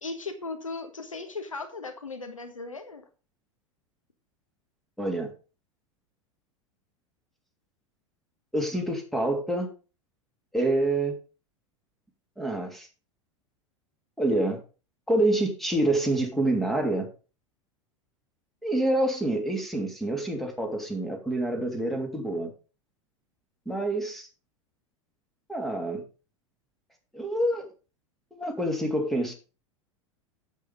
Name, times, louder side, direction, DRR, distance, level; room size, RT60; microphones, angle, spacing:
voice 1, 0.0-3.0, left 3 dB, 80° left, 6 dB, 1.5 m, -37 dB
voice 2, 5.0-5.3 8.5-9.7 10.5-11.2 12.4-12.9 14.2-14.6 15.1-17.1 18.6-22.5 23.7-24.3 25.5-26.0 27.1-27.7 28.3-29.3, right 1 dB, ahead, 3 dB, 2.7 m, -27 dB
8.3 x 7.7 x 5.1 m, 0.34 s
figure-of-eight pair, 85°, 17 cm